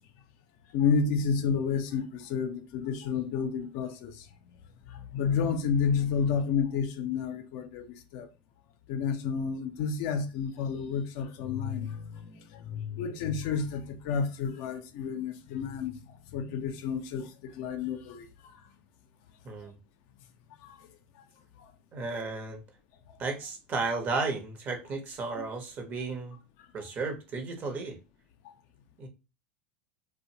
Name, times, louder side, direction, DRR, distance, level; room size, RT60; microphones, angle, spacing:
voice 1, 0.7-4.1 4.9-7.8 8.1-8.3 8.9-15.9 16.3-17.3 17.6-18.3 20.6-20.7, left 6 dB, 60° left, 0.4 m, -30 dB
voice 2, 21.9-22.6 23.2-26.4 26.7-28.0 29.0-29.1, right 3 dB, 40° right, 0.8 m, -33 dB
2.5 x 2.1 x 2.7 m
hypercardioid pair, 95°, 5 cm